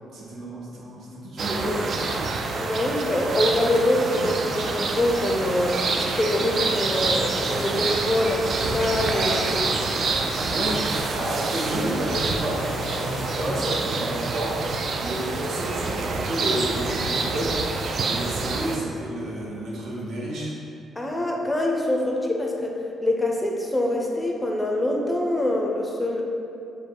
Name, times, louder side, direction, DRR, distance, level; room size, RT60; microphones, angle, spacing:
voice 1, 0.1-2.0 10.5-20.6, right 1 dB, 70° right, -4 dB, 0.9 m, -31 dB
sound 1, 1.4-18.8, right 3 dB, 55° right, 0.4 m, -27 dB
voice 2, 2.6-9.9 21.0-26.2, left 1 dB, 15° left, 0 dB, 0.5 m, -25 dB
sound 2, 3.9-12.4, right 1 dB, 30° right, 0.8 m, -39 dB
Car / Accelerating revving vroom, 9.7-15.8, left 3 dB, 70° left, 0.5 m, -40 dB
5.0 x 2.1 x 4.6 m, 2.6 s
cardioid pair, 90°, 0 cm